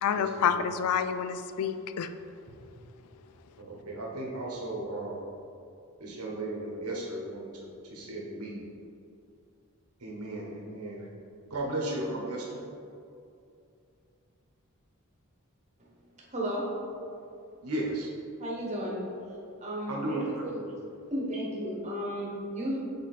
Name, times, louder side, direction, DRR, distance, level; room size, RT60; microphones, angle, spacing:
voice 1, 0.0-2.1, left 7 dB, 80° left, 0.3 m, -28 dB
voice 2, 3.6-5.2 6.0-8.6 10.0-11.1 11.5-12.5 17.6-18.1 19.9-20.5, right 1 dB, 90° right, 1.2 m, -35 dB
voice 3, 16.3-16.6 18.4-19.0 19.6-20.7 21.1-22.8, equal, 30° right, 1.3 m, -33 dB
6.1 x 3.8 x 4.1 m
head